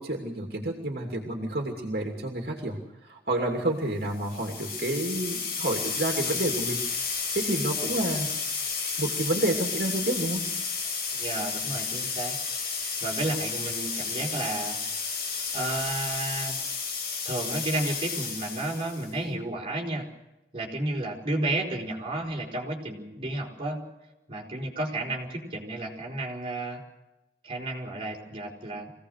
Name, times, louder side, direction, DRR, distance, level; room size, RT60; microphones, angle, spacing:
voice 1, 0.0-6.8 7.3-8.3 9.0-10.5, right 1 dB, 60° right, 1 dB, 2.8 m, -29 dB
sound 1, 4.2-19.1, left 5 dB, 65° left, 6.5 m, -32 dB
voice 2, 11.1-12.4 13.0-14.8 15.5-16.6 17.2-20.1 20.5-23.8 24.3-26.8 27.4-28.9, right 2 dB, 30° right, -1 dB, 4.8 m, -32 dB
25.0 x 17.5 x 6.6 m, 0.94 s
head